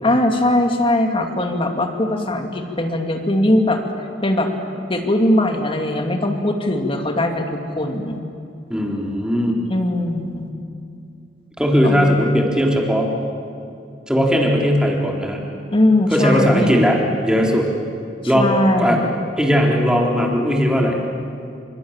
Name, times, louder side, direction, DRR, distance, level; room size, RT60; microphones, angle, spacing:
voice 1, 0.0-3.8 4.2-4.5 4.9-8.2 9.7-10.5 11.8-12.1 15.7-16.8 18.3-19.1, left 1 dB, 30° left, 4 dB, 2.6 m, -20 dB
voice 2, 8.7-9.6 11.6-13.1 14.1-15.4 16.1-17.7 18.3-18.5 18.8-19.0 19.4-21.0, equal, 5° right, -1 dB, 3.7 m, -18 dB
29.0 x 27.0 x 7.4 m, 2.5 s
head